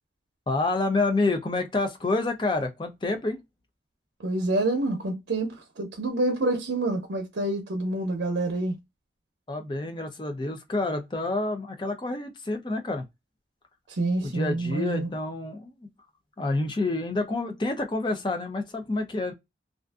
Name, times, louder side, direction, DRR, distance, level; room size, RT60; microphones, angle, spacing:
voice 1, 0.5-3.4 9.5-13.0 14.2-15.7 16.4-19.3, left 2 dB, 25° left, 0.5 m, -28 dB
voice 2, 4.2-8.8 13.9-15.1, right 2 dB, 90° right, 0.6 m, -27 dB
2.5 x 2.4 x 2.3 m
head